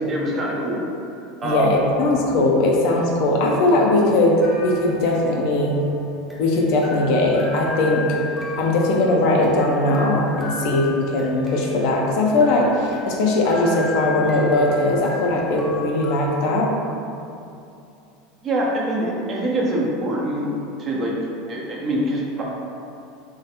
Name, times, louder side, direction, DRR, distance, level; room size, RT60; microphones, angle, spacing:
voice 1, 0.1-0.9 1.4-1.8 18.4-20.5 20.8-21.1 21.5-22.4, right 1 dB, 35° right, -4 dB, 0.7 m, -24 dB
voice 2, 1.4-5.8 6.4-8.1 8.6-16.7, left 2 dB, 60° left, -1 dB, 0.5 m, -19 dB
sound 1, 4.4-16.3, left 3 dB, 5° left, 0.5 m, -36 dB
3.2 x 2.1 x 2.8 m, 2.6 s
hypercardioid pair, 85°, 0 cm